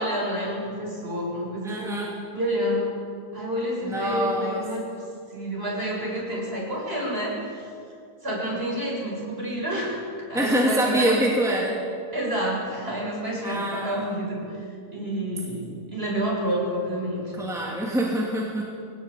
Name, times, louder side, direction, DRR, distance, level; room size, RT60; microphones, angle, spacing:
voice 1, 0.0-2.0 2.3-2.9 3.3-4.8 5.3-7.7 8.2-11.2 12.1-14.6 14.9-17.7, equal, 35° right, -3 dB, 7.5 m, -29 dB
voice 2, 1.6-2.1 3.8-4.7 10.3-11.8 13.4-14.1 17.4-18.7, right 1 dB, ahead, -3 dB, 2.8 m, -25 dB
22.5 x 18.5 x 8.5 m, 2.3 s
omnidirectional pair, 1.8 m